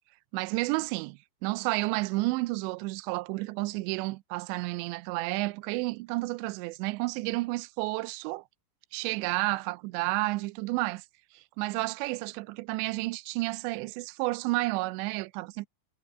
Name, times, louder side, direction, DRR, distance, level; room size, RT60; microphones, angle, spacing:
voice 1, 0.3-8.4 8.9-11.1 11.3-15.7, right 22 dB, 80° right, 2.8 m, -31 dB
omnidirectional pair, 5.3 m